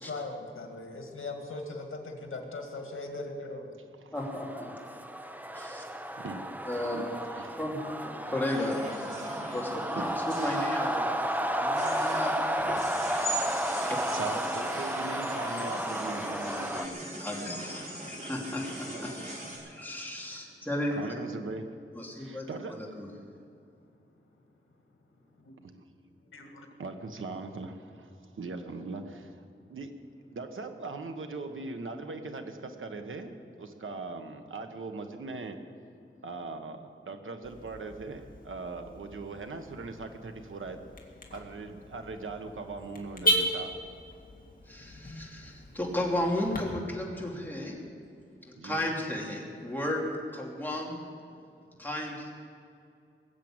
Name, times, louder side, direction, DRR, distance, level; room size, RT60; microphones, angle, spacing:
voice 1, 0.0-3.8 22.3-22.4 23.3-23.9 26.3-26.7 44.4-44.5 48.2-48.6, left 2 dB, 85° left, 3 dB, 1.9 m, -41 dB
voice 2, 0.7-1.6 2.4-3.0 3.3-3.4 4.0-4.1 4.9-5.0 5.6-6.5 6.8-7.6 9.5-9.6 9.9-10.1 13.3-13.7 14.1-16.5 20.9-21.7 22.2-22.8 26.8-29.4 29.7-29.9 30.3-35.6 36.2-40.8 41.3-43.7 48.6-48.9, right 3 dB, 80° right, 6 dB, 1.3 m, -40 dB
voice 3, 4.1-4.7 5.5-5.8 6.7-7.1 7.6-12.8 13.2-13.3 13.8-14.0 16.4-19.4 19.6-21.1 21.9-23.1 44.7-47.8 48.4-51.0 51.8-52.3, left 1 dB, 10° left, -2 dB, 2.9 m, -35 dB
sound 1, 4.2-16.9, equal, 10° right, 0.7 m, -32 dB
sound 2, 8.4-19.6, right 1 dB, 45° right, 5.0 m, -40 dB
Car / Alarm, 37.4-46.6, equal, 45° left, 2.2 m, -36 dB
20.5 x 7.7 x 8.9 m, 2.4 s
wide cardioid pair, 110°, 20 cm